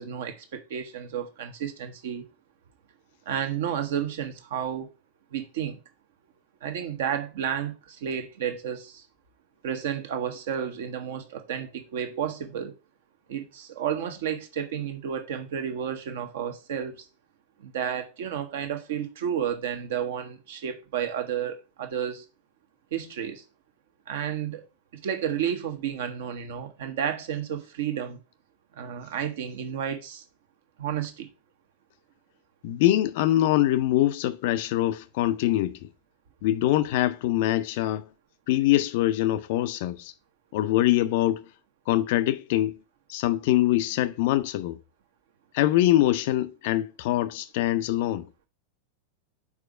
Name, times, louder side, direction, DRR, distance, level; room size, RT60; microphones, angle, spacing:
voice 1, 0.0-2.3 3.3-4.9 5.3-5.8 6.6-9.0 9.6-12.7 13.3-17.1 17.6-22.2 22.9-23.4 24.1-24.6 24.9-28.2 28.8-30.2 30.8-31.3, right 9 dB, 55° right, 0.9 m, -31 dB
voice 2, 32.6-35.8 36.4-38.1 38.5-40.1 40.5-41.4 41.9-42.8 43.1-44.8 45.5-48.3, left 14 dB, 50° left, 0.4 m, -23 dB
4.8 x 4.2 x 4.8 m
figure-of-eight pair, 90°, 0 cm